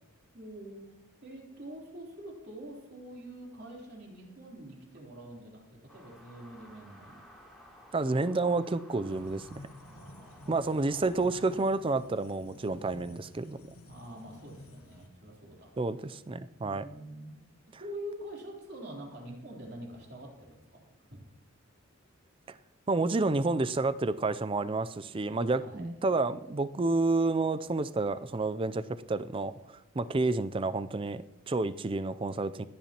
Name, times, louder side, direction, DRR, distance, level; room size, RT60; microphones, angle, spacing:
voice 1, 0.3-0.8 1.2-5.6 5.9-7.2 9.8-11.4 12.7-13.0 13.8-15.7 16.0-16.1 16.6-17.4 17.7-20.8 21.1-21.2 25.6-25.8, right 1 dB, 50° right, -2 dB, 3.4 m, -45 dB
sound 1, 5.9-11.7, equal, ahead, 2.9 m, -55 dB
voice 2, 7.9-9.6 10.5-13.6 15.8-16.9 22.5-22.6 22.9-32.7, right 3 dB, 25° right, 14 dB, 0.4 m, -30 dB
sound 2, 9.1-15.1, left 1 dB, 85° left, 1.4 m, -52 dB
24.5 x 10.0 x 2.9 m, 1.0 s
head